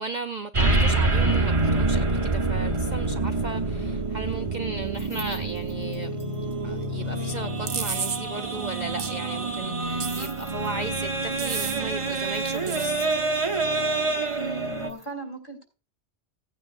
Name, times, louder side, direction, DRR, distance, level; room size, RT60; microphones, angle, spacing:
voice 1, 0.0-6.2 6.6-13.1, right 3 dB, 50° right, 0.6 m, -36 dB
sound 1, 0.5-14.9, right 2 dB, 30° right, 1.0 m, -26 dB
sound 2, 4.8-6.5 6.8-6.9 7.1-7.2 7.4-7.5 7.8-7.9 9.9-11.1 12.3-13.4 14.7-15.1, left 1 dB, 70° left, 4.3 m, -47 dB
sound 3, 7.7-8.2 9.0-9.1 10.0-10.5 11.4-11.8 12.7-12.9, right 7 dB, 70° right, 1.2 m, -31 dB
voice 2, 14.4-15.6, right 2 dB, 45° left, 3.6 m, -36 dB
16.5 x 9.2 x 2.5 m
omnidirectional pair, 1.2 m